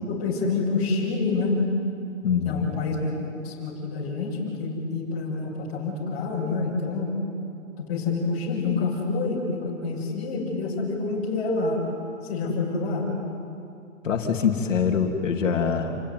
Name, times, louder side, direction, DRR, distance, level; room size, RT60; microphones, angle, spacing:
voice 1, 0.1-1.6 2.4-3.1 3.4-7.1 7.8-11.8 12.2-13.1, left 3 dB, 20° left, -5 dB, 6.6 m, -27 dB
voice 2, 2.2-2.8 14.0-16.0, left 6 dB, 65° left, 2 dB, 3.3 m, -24 dB
29.0 x 21.0 x 9.7 m, 2.5 s
hypercardioid pair, 170°, 40 cm